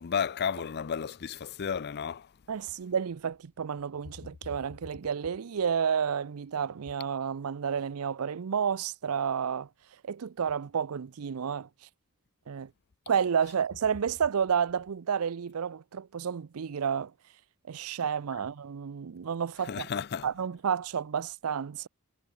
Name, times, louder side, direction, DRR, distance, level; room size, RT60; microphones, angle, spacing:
voice 1, 0.0-2.3 19.6-20.3, left 7 dB, 50° left, 0.5 m, -32 dB
voice 2, 2.5-9.7 10.0-11.7 12.5-12.7 13.1-17.1 17.7-19.9 20.2-21.9, right 7 dB, 75° right, 0.5 m, -31 dB
head